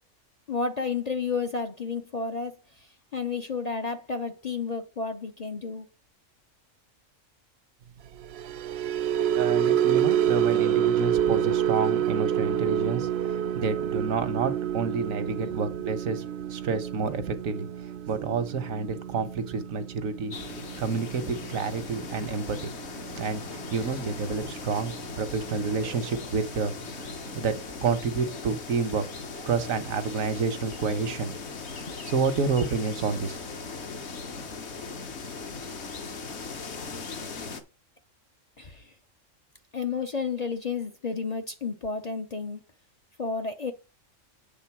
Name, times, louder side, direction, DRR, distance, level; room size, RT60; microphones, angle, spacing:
voice 1, 0.5-2.6 3.1-5.9 38.6-38.8 39.7-42.6 43.2-43.7, left 4 dB, 40° left, 0.6 m, -31 dB
sound 1, 8.2-24.6 24.9-25.2 25.6-25.8, right 10 dB, 65° right, 0.7 m, -28 dB
voice 2, 9.4-17.7 18.1-22.7 23.2-23.4 23.7-26.7 27.3-31.4 31.9-33.4, right 5 dB, 85° right, 1.4 m, -29 dB
sound 2, 20.3-37.6, left 4 dB, 55° left, 1.3 m, -39 dB
8.3 x 3.7 x 5.9 m
omnidirectional pair, 1.4 m